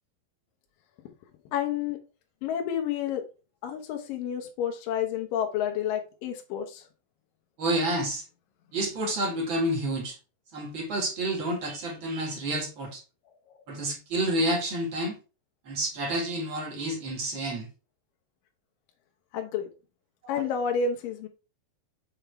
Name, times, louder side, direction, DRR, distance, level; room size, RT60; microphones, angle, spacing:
voice 1, 1.5-2.0 2.4-3.2 3.6-6.9 19.3-19.7 20.3-21.3, left 7 dB, 75° left, 2.4 m, -30 dB
voice 2, 7.6-8.2 8.7-10.2 10.5-13.0 13.7-15.1 15.7-17.7 20.2-20.5, right 1 dB, 40° right, 2.2 m, -29 dB
6.8 x 3.8 x 4.5 m
omnidirectional pair, 4.3 m